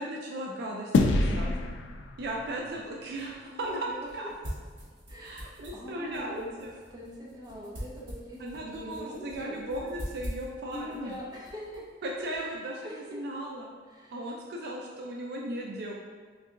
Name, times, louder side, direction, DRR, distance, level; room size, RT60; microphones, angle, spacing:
voice 1, 0.0-1.5 2.2-4.3 5.2-6.7 8.4-11.1 12.0-13.7 14.1-15.9, right 1 dB, 60° right, -1 dB, 0.4 m, -36 dB
sound 1, 0.9-3.6, left 2 dB, 70° left, 0.3 m, -28 dB
voice 2, 1.3-1.6 3.5-3.9 5.1-5.3 5.7-6.5 6.9-8.4 8.7-9.6 10.7-11.9 12.2-12.5 12.8-13.2 13.9-14.4, equal, 20° right, -5 dB, 0.7 m, -43 dB
sound 2, 2.7-12.6, equal, 85° right, 1.3 m, -45 dB
4.5 x 2.7 x 2.5 m, 1.5 s
head